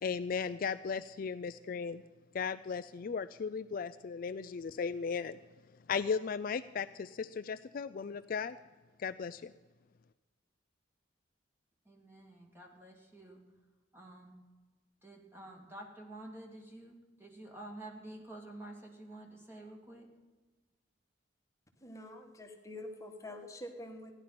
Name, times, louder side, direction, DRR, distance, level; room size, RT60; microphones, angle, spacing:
voice 1, 0.0-2.0 2.3-5.4 5.9-8.6 9.0-9.5, left 5 dB, 50° left, 12 dB, 0.4 m, -36 dB
voice 2, 11.9-13.4 13.9-14.3 15.0-20.1, right 1 dB, 10° right, 1 dB, 2.3 m, -49 dB
voice 3, 21.8-24.1, left 1 dB, 15° left, 3 dB, 1.5 m, -46 dB
15.5 x 11.0 x 5.8 m, 1.3 s
head